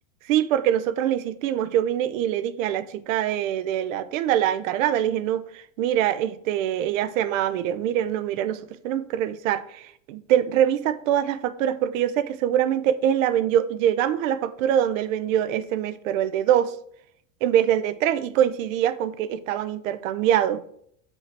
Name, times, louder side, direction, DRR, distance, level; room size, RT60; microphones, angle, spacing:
voice 1, 0.3-16.7 17.4-20.6, right 10 dB, 70° right, 0.7 m, -24 dB
5.8 x 5.4 x 4.6 m
supercardioid pair, 155°, 41 cm